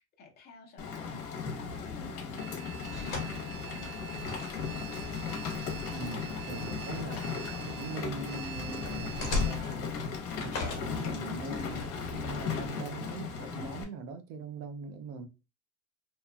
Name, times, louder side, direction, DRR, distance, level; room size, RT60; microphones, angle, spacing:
voice 1, 0.0-4.7, left 4 dB, 20° left, 0.5 m, -51 dB
Rain, 0.8-13.8, left 6 dB, 65° left, 1.0 m, -37 dB
sound 1, 1.1-13.1, left 3 dB, 45° left, 1.2 m, -41 dB
sound 2, 2.4-9.6, right 13 dB, 85° right, 0.6 m, -46 dB
voice 2, 5.9-7.3 7.6-9.9 10.4-15.3, right 4 dB, 35° right, 0.4 m, -41 dB
2.8 x 2.3 x 2.2 m
cardioid pair, 155°, 44 cm